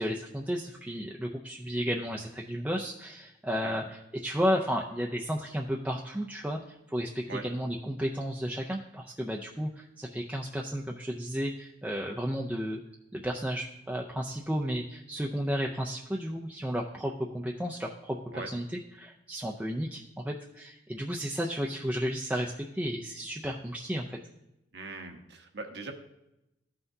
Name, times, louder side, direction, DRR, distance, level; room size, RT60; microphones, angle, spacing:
voice 1, 0.0-12.8 13.1-18.7 18.9-24.2, equal, 5° right, -1 dB, 0.4 m, -33 dB
voice 2, 24.7-25.9, right 3 dB, 65° right, 4 dB, 1.0 m, -40 dB
14.0 x 5.8 x 2.7 m, 0.88 s
head